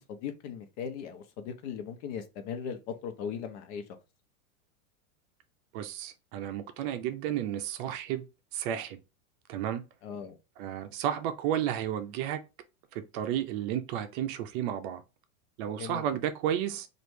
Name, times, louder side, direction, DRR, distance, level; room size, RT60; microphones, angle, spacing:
voice 1, 0.0-3.8 10.0-10.4 15.8-16.2, left 7 dB, 55° left, 0.9 m, -38 dB
voice 2, 5.7-8.2 8.5-9.0 9.5-9.8 10.6-12.4 12.9-15.0 15.6-16.9, right 10 dB, 40° right, 0.5 m, -32 dB
3.1 x 2.6 x 4.4 m
supercardioid pair, 135°, 42 cm